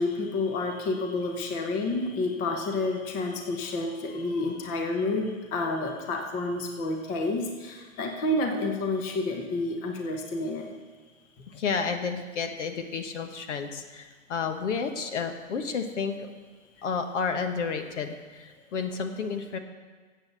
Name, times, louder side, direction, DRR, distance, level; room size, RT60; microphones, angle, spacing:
voice 1, 0.0-10.7, left 2 dB, 20° left, 3 dB, 1.1 m, -29 dB
voice 2, 11.5-16.2 16.8-19.6, left 5 dB, 60° left, 6 dB, 1.4 m, -31 dB
11.5 x 8.2 x 6.9 m, 1.5 s
hypercardioid pair, 155°, 40 cm